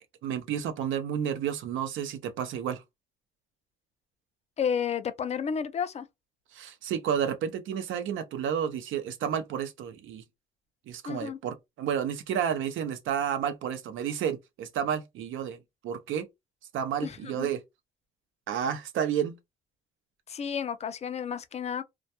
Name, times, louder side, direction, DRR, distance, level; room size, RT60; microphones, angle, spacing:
voice 1, 0.2-2.8 6.5-10.2 10.9-16.3 16.7-17.6 18.5-19.4, right 8 dB, 80° right, 0.6 m, -31 dB
voice 2, 4.6-6.1 11.1-11.4 17.0-17.5 20.3-21.8, left 7 dB, 35° left, 0.4 m, -31 dB
2.2 x 2.2 x 2.7 m
cardioid pair, 95°, 20 cm